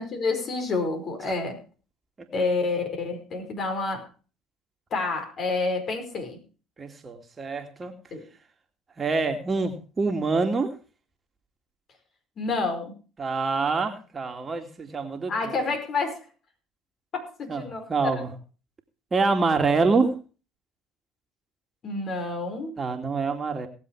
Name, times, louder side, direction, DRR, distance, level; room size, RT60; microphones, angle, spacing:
voice 1, 0.0-1.6 2.3-4.0 4.9-6.4 8.1-8.2 12.4-12.9 15.3-16.2 17.1-18.2 21.8-22.7, left 3 dB, 50° left, 5 dB, 5.1 m, -28 dB
voice 2, 6.8-7.9 9.0-10.7 13.2-15.6 17.5-17.6 17.9-18.3 19.1-20.1 22.8-23.7, right 4 dB, 30° right, 5 dB, 2.3 m, -26 dB
19.0 x 7.5 x 4.8 m, 0.36 s
hypercardioid pair, 70°, 0 cm